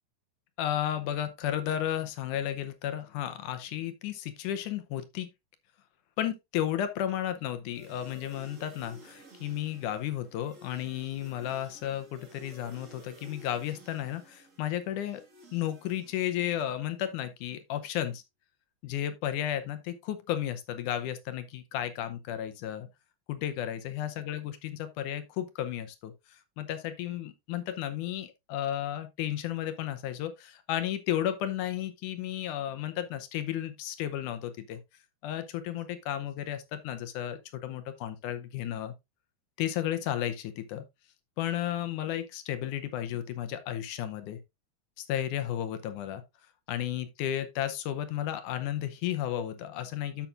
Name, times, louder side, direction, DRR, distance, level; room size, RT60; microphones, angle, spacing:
voice 1, 0.6-5.3 6.2-15.2 15.5-18.2 18.8-22.9 23.3-34.8 35.2-38.9 39.6-40.8 41.4-44.4 45.0-46.2 46.7-50.3, left 11 dB, 75° left, 2.0 m, -33 dB
sound 1, 7.7-16.8, right 1 dB, 35° right, 1.2 m, -54 dB
13.0 x 5.8 x 2.5 m
omnidirectional pair, 4.3 m